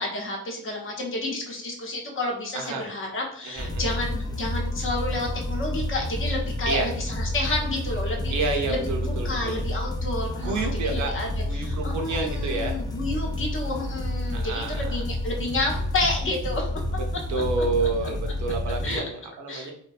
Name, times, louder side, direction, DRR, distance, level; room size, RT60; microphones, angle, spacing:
voice 1, 0.0-8.3 8.7-8.8 9.0-16.7 18.8-19.0 19.5-19.7, left 2 dB, 45° left, 1 dB, 0.7 m, -30 dB
voice 2, 2.5-2.9 3.4-4.0 6.6-6.9 8.3-9.6 10.4-11.1 11.5-12.8 14.3-15.0 17.3-19.7, right 3 dB, 70° right, 3 dB, 0.6 m, -29 dB
sound 1, 3.6-19.0, left 1 dB, 15° left, 0.4 m, -30 dB
2.5 x 2.1 x 2.3 m, 0.65 s
cardioid pair, 90°, 30 cm